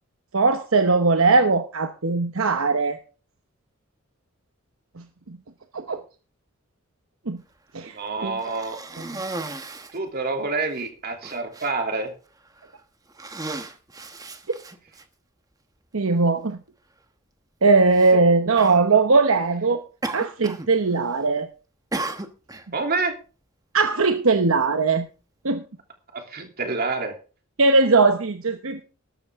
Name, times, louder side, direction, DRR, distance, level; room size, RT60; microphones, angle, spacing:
voice 1, 0.3-3.0 5.3-5.4 5.7-6.0 7.3-7.4 7.7-7.9 8.2-8.4 15.9-16.6 17.6-19.8 20.1-21.5 23.7-25.1 25.4-25.6 27.6-28.8, right 3 dB, 70° right, 7 dB, 1.0 m, -19 dB
voice 2, 7.9-8.8 9.9-12.1 22.7-23.1 26.1-27.1, right 3 dB, 45° right, 4 dB, 3.0 m, -27 dB
Cough, 8.4-10.0 10.7-10.8 11.2-11.7 12.5-12.7 13.1-15.0 16.0-16.1 17.9-18.1 18.5-18.8 20.0-20.7 21.0-21.4 21.9-22.7, right 2 dB, 15° right, 1.1 m, -34 dB
13.5 x 12.5 x 3.6 m, 0.35 s
head